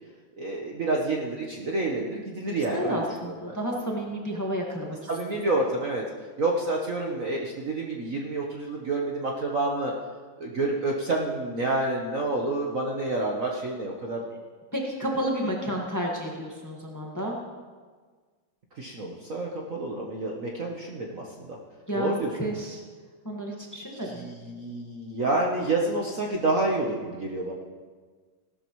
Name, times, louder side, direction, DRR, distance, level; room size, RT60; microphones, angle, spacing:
voice 1, 0.4-3.6 5.1-6.0 6.4-9.9 10.4-14.2 18.8-21.6 21.9-22.4 24.0-27.5, right 2 dB, 45° right, -1 dB, 1.3 m, -28 dB
voice 2, 2.6-5.1 14.7-17.4 21.9-22.8 23.2-24.3, equal, 10° left, -2 dB, 1.5 m, -31 dB
17.0 x 12.5 x 3.1 m, 1.5 s
omnidirectional pair, 2.3 m